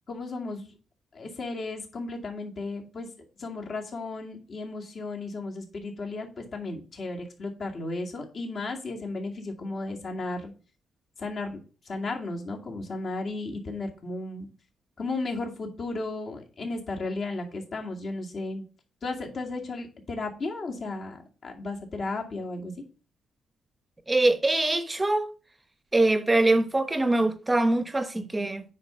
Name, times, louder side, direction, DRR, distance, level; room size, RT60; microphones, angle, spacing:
voice 1, 0.1-0.7 1.1-3.1 3.4-10.5 11.2-11.6 11.9-14.5 15.0-18.6 19.0-22.7, left 2 dB, 50° left, 2.2 m, -34 dB
voice 2, 24.1-25.3 25.9-28.6, right 2 dB, 15° right, 0.9 m, -23 dB
9.1 x 3.9 x 5.7 m
cardioid pair, 105°, 0 cm